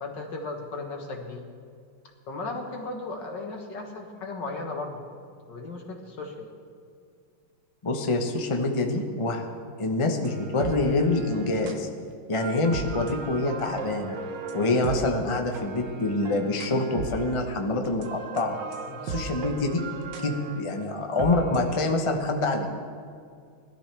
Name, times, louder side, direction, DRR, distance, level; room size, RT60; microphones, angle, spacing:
voice 1, 0.0-1.5 2.3-5.0 5.5-6.5 18.9-19.2, left 3 dB, 60° left, 2 dB, 2.1 m, -36 dB
voice 2, 7.8-9.4 9.8-11.9 12.3-14.2 14.5-18.6 19.0-19.8 20.2-22.7, left 2 dB, 25° left, 2 dB, 0.7 m, -26 dB
sound 1, 10.2-11.8 12.4-17.5 17.8-21.9, right 4 dB, 65° right, 1.5 m, -37 dB
20.5 x 13.0 x 3.4 m, 2.3 s
omnidirectional pair, 2.3 m